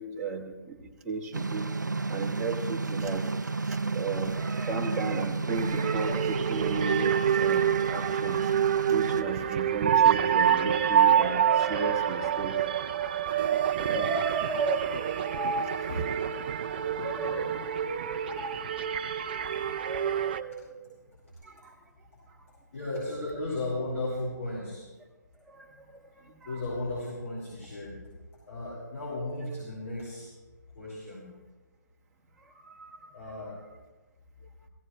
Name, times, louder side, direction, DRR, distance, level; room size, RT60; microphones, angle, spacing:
voice 1, 0.0-8.4 8.9-12.7 12.9-13.2 13.8-15.8 16.7-18.7 19.8-20.9 21.4-21.8 22.3-22.5 25.5-26.6 32.4-33.3, right 3 dB, 10° right, -4 dB, 1.7 m, -36 dB
sound 1, 1.3-9.2, right 3 dB, 85° right, 0.4 m, -32 dB
sound 2, 5.5-20.4, right 9 dB, 30° right, 0.5 m, -27 dB
voice 2, 22.7-24.8 26.4-28.0 28.5-30.3 30.8-31.3 33.1-33.6, left 2 dB, 50° left, -7 dB, 5.8 m, -35 dB
18.5 x 16.0 x 3.3 m, 1.2 s
figure-of-eight pair, 145°, 10 cm